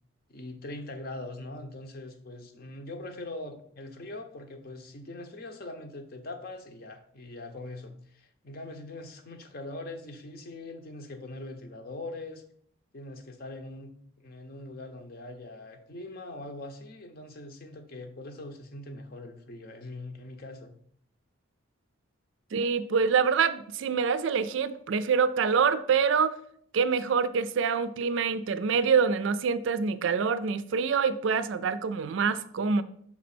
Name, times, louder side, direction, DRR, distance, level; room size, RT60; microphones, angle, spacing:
voice 1, 0.3-12.4 12.9-20.8, left 2 dB, 45° left, 0.7 m, -42 dB
voice 2, 22.5-26.4 26.7-32.8, right 6 dB, 65° right, 0.4 m, -26 dB
6.0 x 4.1 x 4.3 m
head